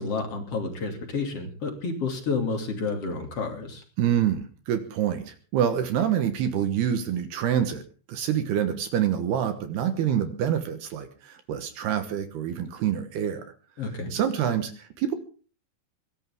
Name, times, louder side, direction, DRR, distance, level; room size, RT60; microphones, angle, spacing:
voice 1, 0.0-3.8 13.8-14.1, left 4 dB, 35° left, 4 dB, 2.9 m, -30 dB
voice 2, 4.0-7.8 8.1-13.5 14.1-15.1, right 9 dB, 70° right, 9 dB, 2.9 m, -26 dB
22.5 x 17.0 x 3.6 m, 0.39 s
omnidirectional pair, 5.5 m